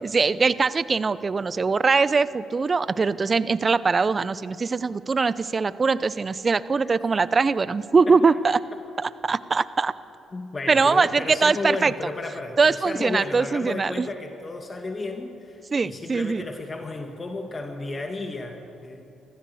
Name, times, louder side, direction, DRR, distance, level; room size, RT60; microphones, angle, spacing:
voice 1, 0.0-8.6 9.0-9.9 10.7-11.9 12.6-14.1 15.7-16.4, right 4 dB, 40° right, 17 dB, 0.7 m, -22 dB
voice 2, 10.3-19.0, left 2 dB, 35° left, 4 dB, 2.0 m, -33 dB
24.5 x 14.5 x 7.9 m, 2.7 s
hypercardioid pair, 50°, 0 cm